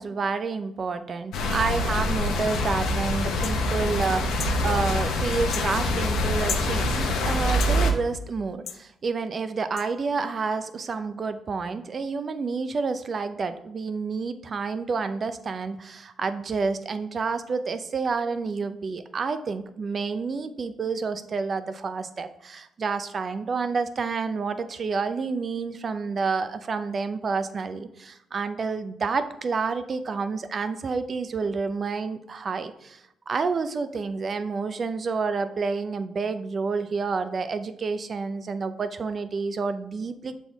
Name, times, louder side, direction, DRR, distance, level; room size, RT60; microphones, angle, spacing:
voice 1, 0.0-40.3, right 4 dB, 45° right, 11 dB, 0.5 m, -29 dB
sound 1, 1.3-7.9, left 1 dB, 85° left, 0.8 m, -25 dB
sound 2, 3.4-3.6 4.4-4.6 5.5-5.7 6.5-6.7 7.6-7.8 8.7-8.8 9.8-9.9, left 7 dB, 60° left, 0.4 m, -33 dB
7.1 x 4.2 x 3.5 m, 0.80 s
cardioid pair, 90°, 0 cm